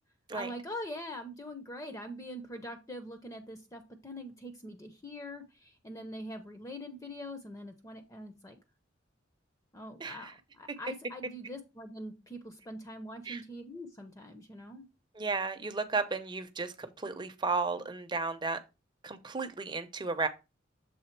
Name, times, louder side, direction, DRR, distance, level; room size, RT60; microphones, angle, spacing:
voice 1, 0.3-8.6 9.7-14.9, left 1 dB, 15° left, 0.6 m, -43 dB
voice 2, 10.0-10.3 13.3-13.4 15.2-18.6 19.0-20.3, right 4 dB, 25° right, 0.6 m, -33 dB
6.9 x 3.6 x 4.4 m
head